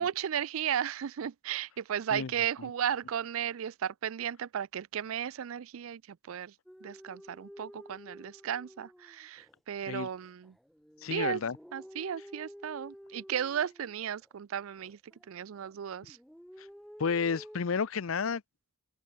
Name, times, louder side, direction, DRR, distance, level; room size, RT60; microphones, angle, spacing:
voice 1, 0.0-6.5 6.8-10.5 11.1-11.4 11.7-15.0 15.3-16.2, right 9 dB, 85° right, 0.4 m, -35 dB
sound 1, 6.7-9.6 10.1-14.3 14.8-15.7 16.0-17.6, equal, ahead, 2.5 m, -51 dB
voice 2, 11.0-11.6 17.0-18.4, left 5 dB, 80° left, 0.6 m, -31 dB
open air
head